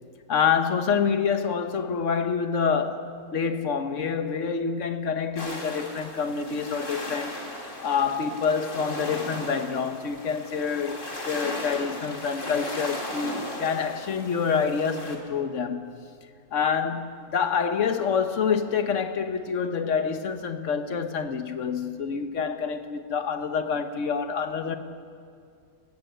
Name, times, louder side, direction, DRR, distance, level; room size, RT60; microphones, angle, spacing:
voice 1, 0.3-7.4 7.8-15.9 16.5-24.8, left 6 dB, 55° left, 1.4 m, -27 dB
sound 1, 5.4-15.2, left 1 dB, 35° left, 2.6 m, -37 dB
19.5 x 16.5 x 8.1 m
omnidirectional pair, 1.5 m